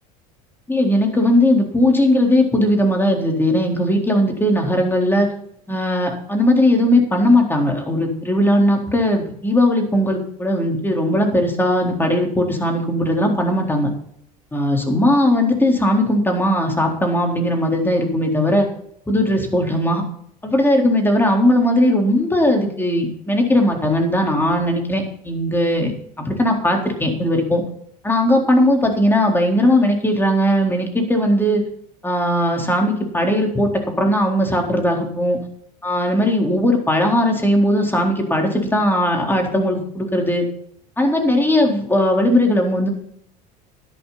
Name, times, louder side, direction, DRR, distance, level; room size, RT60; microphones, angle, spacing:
voice 1, 0.7-5.3 5.7-13.9 14.5-18.7 19.1-20.0 20.4-25.9 26.2-27.6 28.0-31.6 32.0-33.7 34.0-35.4 35.8-40.5 41.0-42.9, left 1 dB, 10° left, 1 dB, 4.0 m, -18 dB
12.0 x 11.5 x 4.2 m, 0.67 s
hypercardioid pair, 75°, 21 cm